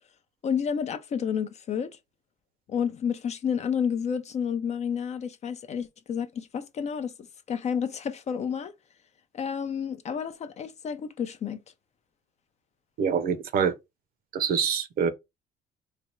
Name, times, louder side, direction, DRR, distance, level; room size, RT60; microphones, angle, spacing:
voice 1, 0.4-2.0 2.7-7.1 7.5-8.7 9.3-11.6, left 7 dB, 40° left, 0.5 m, -30 dB
voice 2, 13.0-13.7 14.3-15.1, right 7 dB, 60° right, 0.6 m, -25 dB
3.3 x 2.2 x 4.2 m
cardioid pair, 110°, 17 cm